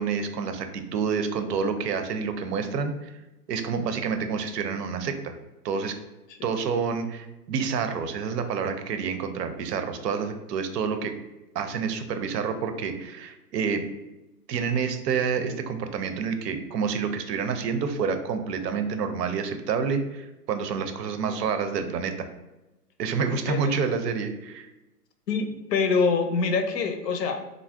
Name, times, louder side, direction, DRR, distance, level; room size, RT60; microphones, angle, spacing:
voice 1, 0.0-3.1 3.5-5.3 5.6-5.9 6.4-11.1 11.5-13.9 14.5-22.3 23.0-24.7, right 6 dB, 75° right, 8 dB, 0.6 m, -28 dB
voice 2, 23.3-23.7 25.3-27.4, left 5 dB, 80° left, 7 dB, 0.6 m, -25 dB
2.5 x 2.0 x 3.3 m, 1.0 s
hypercardioid pair, 170°, 48 cm